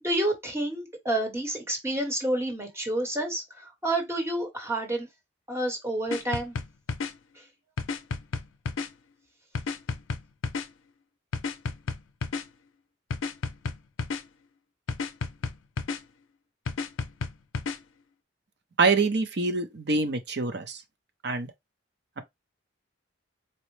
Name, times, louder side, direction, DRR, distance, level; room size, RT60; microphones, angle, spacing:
voice 1, 0.0-5.1 5.5-6.6 7.4-7.5, right 1 dB, 15° right, 1.0 m, -29 dB
sound 1, 6.1-7.1 7.8-8.9 9.5-10.7 11.3-12.4 13.1-14.2 14.9-16.0 16.7-17.8, left 4 dB, 85° left, 0.5 m, -31 dB
voice 2, 18.8-20.8 21.2-21.5, right 3 dB, 55° right, 0.6 m, -25 dB
4.2 x 2.0 x 3.1 m
head